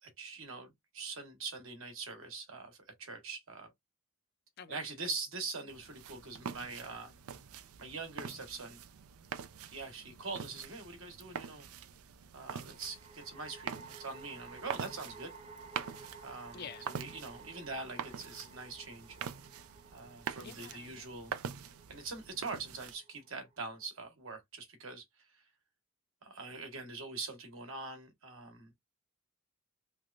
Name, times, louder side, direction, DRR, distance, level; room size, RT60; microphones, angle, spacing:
voice 1, 0.0-3.7 4.7-7.1 7.8-8.8 9.6-11.7 12.3-15.3 16.2-19.2 19.9-21.3 21.9-25.0 26.2-28.7, right 4 dB, 70° right, 1.3 m, -43 dB
sound 1, 5.7-23.0, right 7 dB, 90° right, 0.5 m, -45 dB
sound 2, 9.5-10.1 12.5-23.9, right 4 dB, 25° right, 0.6 m, -55 dB
voice 2, 16.5-17.1 20.4-21.1, left 6 dB, 45° left, 0.4 m, -48 dB
3.3 x 3.1 x 2.5 m
head